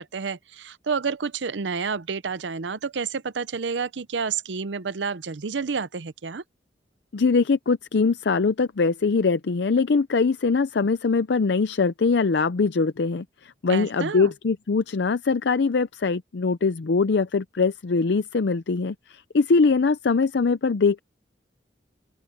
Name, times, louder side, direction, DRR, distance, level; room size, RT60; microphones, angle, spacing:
voice 1, 0.0-6.4 13.7-14.3, right 5 dB, 85° right, 0.7 m, -29 dB
voice 2, 7.1-21.0, left 4 dB, 70° left, 0.5 m, -22 dB
open air
head